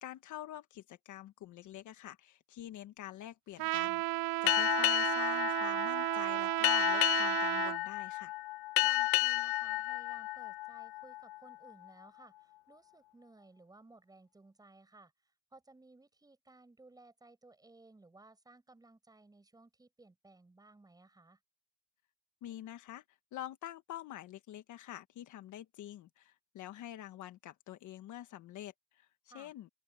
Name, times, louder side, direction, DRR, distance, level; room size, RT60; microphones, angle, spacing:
voice 1, 0.0-8.3 22.4-23.0 23.3-29.7, left 13 dB, 55° left, 1.5 m, -47 dB
Trumpet, 3.6-7.8, right 20 dB, 80° right, 0.5 m, -33 dB
Boat Water vehicle, 4.5-11.5, left 20 dB, 80° left, 0.9 m, -32 dB
voice 2, 8.8-21.4 29.3-29.5, right 2 dB, 10° right, 6.7 m, -59 dB
open air
cardioid pair, 155°, 35 cm